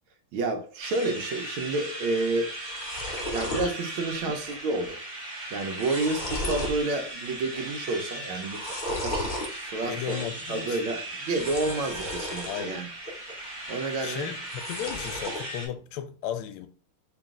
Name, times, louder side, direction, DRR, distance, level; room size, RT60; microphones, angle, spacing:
voice 1, 0.3-2.5 3.3-5.0 5.5-8.6 8.9-10.2 10.5-12.9 13.7-14.3, right 2 dB, 75° right, 1.5 m, -30 dB
sound 1, 0.8-15.7, right 1 dB, 35° right, 0.9 m, -38 dB
sound 2, 2.2-2.3 2.5-3.7 4.2-4.6 4.8-4.9 5.5-6.8 7.2-7.7 8.4-9.5 11.3-12.6 13.1-13.7 14.4-15.4, left 1 dB, 45° left, 0.6 m, -34 dB
voice 2, 9.8-10.8 12.5-12.8 14.0-16.7, left 10 dB, 85° left, 1.5 m, -35 dB
3.3 x 3.0 x 3.6 m
omnidirectional pair, 2.4 m